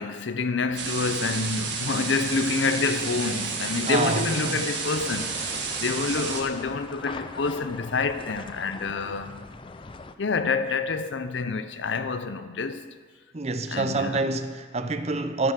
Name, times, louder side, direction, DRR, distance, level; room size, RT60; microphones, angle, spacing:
voice 1, 0.0-5.3 5.8-9.4 10.2-12.9 13.7-14.2, left 4 dB, 70° left, 0.6 m, -27 dB
sound 1, 0.8-6.4, right 5 dB, 60° right, 1.7 m, -31 dB
voice 2, 3.8-4.6 13.3-15.5, right 3 dB, 35° right, 0.6 m, -27 dB
sound 2, 4.8-10.1, left 3 dB, 25° left, 0.5 m, -41 dB
14.0 x 6.9 x 6.4 m
head